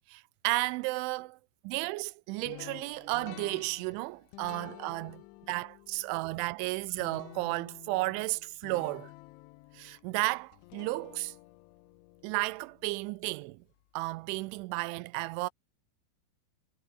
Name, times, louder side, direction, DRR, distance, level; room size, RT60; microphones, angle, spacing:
voice 1, 0.1-1.4 1.6-5.2 5.5-9.1 9.7-11.3 12.2-13.6 13.9-15.5, right 23 dB, 90° right, 3.1 m, -33 dB
sound 1, 2.4-13.5, left 20 dB, 90° left, 3.1 m, -51 dB
omnidirectional pair, 5.3 m